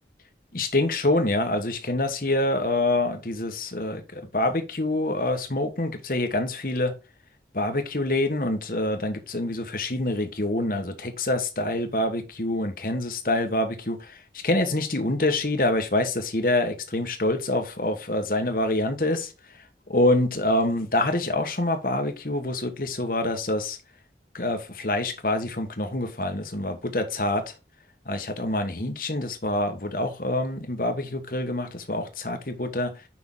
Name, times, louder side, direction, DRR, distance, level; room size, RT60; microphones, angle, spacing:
voice 1, 0.5-6.9 7.5-23.8 24.3-27.5 28.0-33.1, left 2 dB, 50° left, 1.3 m, -26 dB
6.2 x 5.7 x 3.8 m
head